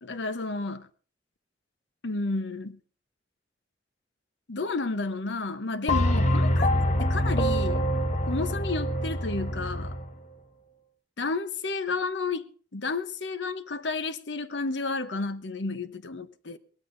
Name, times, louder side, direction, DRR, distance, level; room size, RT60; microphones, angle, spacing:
voice 1, 0.0-0.9 2.0-2.8 4.5-6.7 7.0-7.9 8.3-10.0 11.2-16.6, left 3 dB, 80° left, 0.9 m, -31 dB
sound 1, 5.9-10.1, equal, 40° left, 1.0 m, -25 dB
22.5 x 18.0 x 2.6 m
head